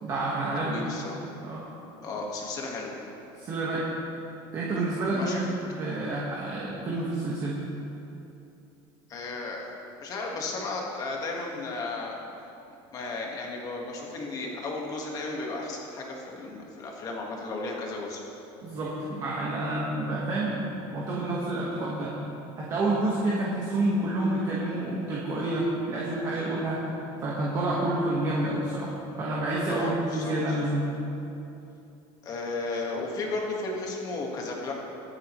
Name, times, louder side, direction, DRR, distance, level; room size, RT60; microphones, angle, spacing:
voice 1, 0.0-0.8 1.4-1.6 3.4-3.8 4.5-7.6 18.6-20.6 20.9-22.2 22.6-26.8 27.2-30.9, right 2 dB, 30° right, -5 dB, 1.5 m, -29 dB
voice 2, 0.6-1.2 2.0-2.9 5.1-5.4 9.1-9.6 10.0-12.2 12.9-18.2 29.7-30.6 32.2-34.7, left 3 dB, 30° left, -1 dB, 1.7 m, -34 dB
21.5 x 8.5 x 3.2 m, 2.9 s
cardioid pair, 175°, 12 cm